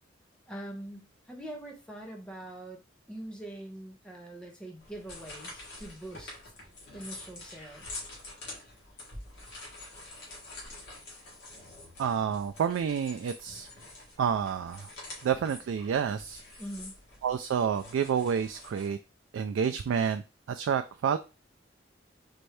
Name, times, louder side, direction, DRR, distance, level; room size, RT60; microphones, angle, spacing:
voice 1, 0.5-2.8 3.1-6.3 6.9-8.0 16.6-17.0, right 1 dB, 5° left, 0 dB, 0.8 m, -43 dB
sound 1, 4.8-18.9, left 2 dB, 60° left, 1.7 m, -47 dB
voice 2, 12.0-13.7 14.2-14.9 15.2-16.4 17.2-19.0 19.3-21.2, right 7 dB, 90° right, 8 dB, 0.3 m, -29 dB
4.4 x 2.6 x 3.2 m, 0.29 s
head